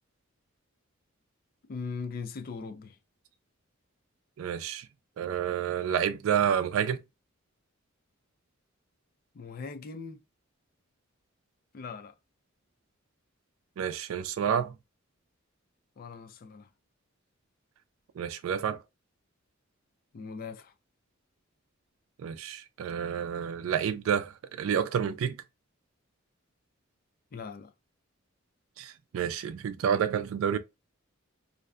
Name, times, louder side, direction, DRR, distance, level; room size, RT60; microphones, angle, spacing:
voice 1, 1.7-3.0 9.3-10.2 11.7-12.1 16.0-16.7 20.1-20.7 27.3-27.7, left 5 dB, 45° left, 0.4 m, -40 dB
voice 2, 4.4-4.9 5.2-7.0 13.8-14.7 18.2-18.8 22.2-25.4 28.8-30.6, right 8 dB, 75° right, 0.3 m, -29 dB
2.5 x 2.1 x 2.3 m
head